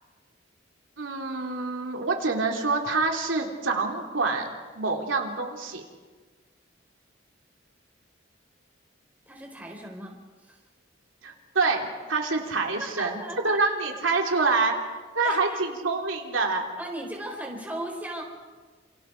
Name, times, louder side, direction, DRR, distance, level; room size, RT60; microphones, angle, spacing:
voice 1, 1.0-4.5 4.7-5.8 11.2-13.2 13.4-14.7 15.1-16.6, right 3 dB, 85° right, 2 dB, 3.0 m, -26 dB
voice 2, 9.3-10.6 12.8-13.6 15.2-15.6 16.8-18.2, right 1 dB, 10° right, 1 dB, 4.2 m, -37 dB
30.0 x 28.0 x 4.6 m, 1.4 s
head